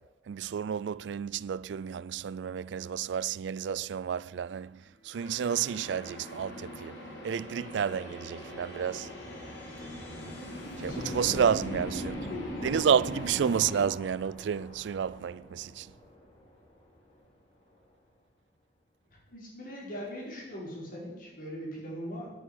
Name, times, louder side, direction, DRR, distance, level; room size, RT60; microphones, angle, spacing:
voice 1, 0.3-4.8 5.0-9.1 10.8-12.3 12.6-15.9, right 7 dB, 70° right, 0.3 m, -30 dB
sound 1, 4.7-18.2, equal, 35° left, 3.4 m, -48 dB
sound 2, 5.1-13.8, equal, 80° left, 3.3 m, -41 dB
voice 2, 10.8-11.6 12.3-12.5 19.3-22.3, equal, 50° left, 4.8 m, -40 dB
10.0 x 9.3 x 8.3 m
head